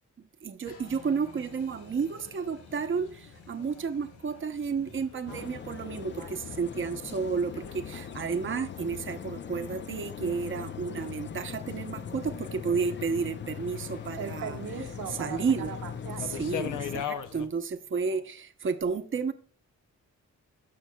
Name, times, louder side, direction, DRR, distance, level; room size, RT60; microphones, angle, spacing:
voice 1, 0.4-14.6 15.2-15.7 16.2-19.3, right 5 dB, 40° right, 0.8 m, -32 dB
sound 1, 0.6-17.5, left 9 dB, 80° left, 0.7 m, -45 dB
Applause, 0.6-9.0, left 2 dB, 65° left, 4.3 m, -55 dB
sound 2, 5.3-17.0, left 7 dB, 40° left, 0.5 m, -40 dB
voice 2, 14.2-16.3 17.9-18.2, right 6 dB, 85° right, 1.4 m, -40 dB
15.5 x 6.0 x 2.2 m
cardioid pair, 85°, 30 cm